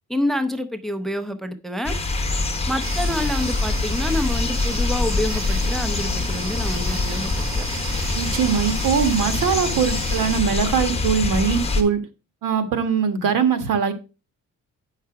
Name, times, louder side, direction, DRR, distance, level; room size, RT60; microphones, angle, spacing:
voice 1, 0.1-1.9 2.7-7.6, left 1 dB, ahead, 10 dB, 0.6 m, -27 dB
sound 1, 1.8-11.8, left 3 dB, 20° left, 1.3 m, -24 dB
sound 2, 2.8-10.4, right 4 dB, 55° right, 2.0 m, -34 dB
voice 2, 8.1-12.0 12.4-13.9, right 7 dB, 80° right, 8 dB, 1.5 m, -21 dB
8.5 x 5.7 x 4.7 m, 0.31 s
cardioid pair, 140°, 32 cm